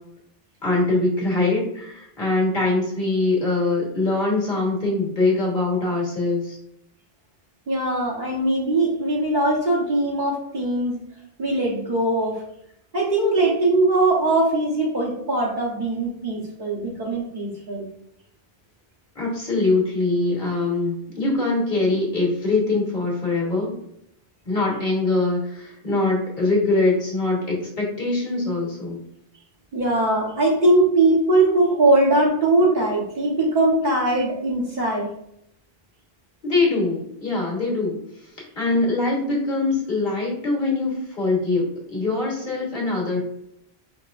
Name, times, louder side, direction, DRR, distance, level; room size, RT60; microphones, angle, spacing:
voice 1, 0.6-6.6 19.1-23.8 24.5-29.0 36.4-43.2, left 3 dB, 55° left, -3 dB, 1.3 m, -23 dB
voice 2, 7.7-11.0 11.4-12.4 12.9-17.8 29.7-35.1, right 2 dB, 50° right, -4 dB, 1.2 m, -21 dB
5.1 x 2.9 x 2.5 m, 0.76 s
omnidirectional pair, 1.0 m